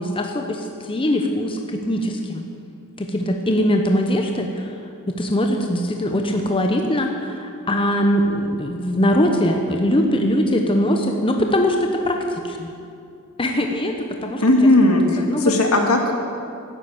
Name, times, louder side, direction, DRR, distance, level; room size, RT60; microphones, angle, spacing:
voice 1, 0.0-2.5 3.0-4.7 5.1-12.7 13.4-14.4 14.8-15.5, equal, 25° left, 3 dB, 0.9 m, -21 dB
voice 2, 14.4-16.2, left 1 dB, 75° left, 3 dB, 1.9 m, -16 dB
12.0 x 9.9 x 8.6 m, 2.5 s
head